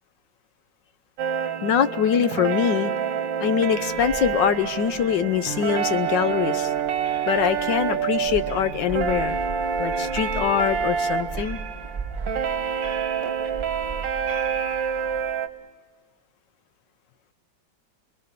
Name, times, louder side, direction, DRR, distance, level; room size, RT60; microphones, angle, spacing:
sound 1, 1.2-15.5, right 7 dB, 90° right, 1.8 m, -27 dB
voice 1, 1.6-2.9 3.4-6.7 7.3-9.4 9.8-11.6, left 8 dB, 75° left, 11 dB, 1.6 m, -23 dB
sound 2, 3.7-15.2, right 5 dB, 15° right, 5.6 m, -38 dB
30.0 x 20.5 x 6.7 m, 1.3 s
omnidirectional pair, 2.0 m